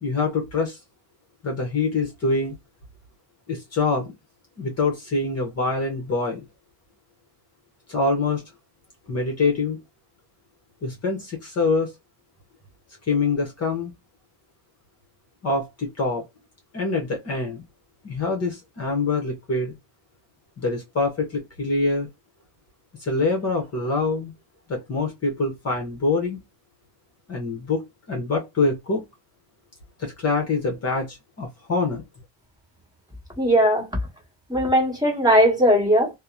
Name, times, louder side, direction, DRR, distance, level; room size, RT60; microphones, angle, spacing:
voice 1, 0.0-0.8 1.4-2.5 3.5-4.1 4.6-6.5 7.9-8.4 9.1-9.8 10.8-11.9 13.1-13.9 15.4-16.2 16.7-17.6 18.0-19.7 20.6-22.1 23.0-24.3 24.7-26.4 27.3-29.0 30.0-32.0, left 3 dB, 35° left, 0.8 m, -25 dB
voice 2, 33.4-33.9 34.5-36.1, equal, 10° right, 1.2 m, -18 dB
2.8 x 2.0 x 2.3 m
cardioid pair, 130°, 46 cm